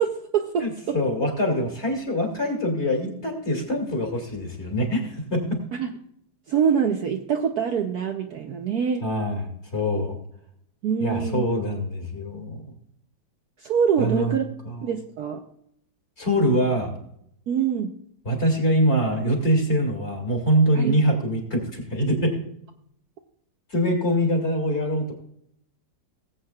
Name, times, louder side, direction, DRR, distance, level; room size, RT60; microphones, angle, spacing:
voice 1, 0.0-1.0 5.7-5.9 6.5-9.1 10.8-11.4 13.6-14.4 14.8-15.4 17.5-17.9 20.7-20.9, right 7 dB, 65° right, 4 dB, 1.0 m, -24 dB
voice 2, 0.6-5.6 9.0-10.2 11.0-12.6 14.0-14.4 14.7-14.9 16.2-17.0 18.2-22.4 23.7-25.1, equal, 35° left, 1 dB, 2.4 m, -24 dB
19.0 x 8.1 x 2.3 m, 0.71 s
omnidirectional pair, 2.2 m